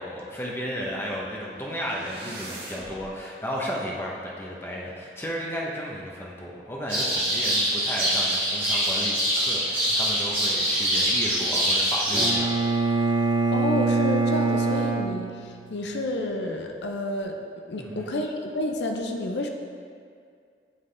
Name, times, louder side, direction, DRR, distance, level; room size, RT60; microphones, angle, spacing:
voice 1, 0.0-12.5 17.7-18.1, equal, 15° left, -4 dB, 0.7 m, -34 dB
sound 1, 0.9-3.1, right 1 dB, 65° right, 1.4 m, -42 dB
sound 2, 6.9-12.3, equal, 15° right, 1.6 m, -24 dB
Bowed string instrument, 12.1-16.0, right 4 dB, 30° right, 0.4 m, -24 dB
voice 2, 13.5-17.4 17.7-19.5, left 2 dB, 80° left, 3 dB, 0.6 m, -30 dB
9.8 x 3.6 x 3.3 m, 2.2 s
head